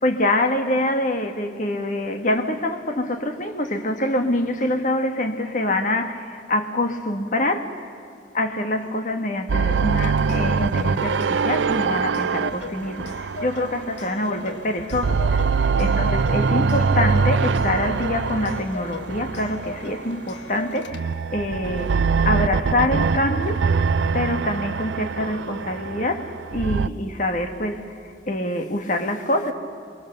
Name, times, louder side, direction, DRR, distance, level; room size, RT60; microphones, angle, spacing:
voice 1, 0.0-7.9 8.3-23.8 24.1-28.0 28.3-29.5, left 1 dB, 45° left, 1.6 m, -25 dB
sound 1, 9.5-14.5 14.8-20.1 20.9-26.9, right 5 dB, 90° right, 0.5 m, -23 dB
Clock, 9.7-21.3, left 2 dB, 90° left, 1.4 m, -38 dB
29.0 x 23.5 x 6.7 m
head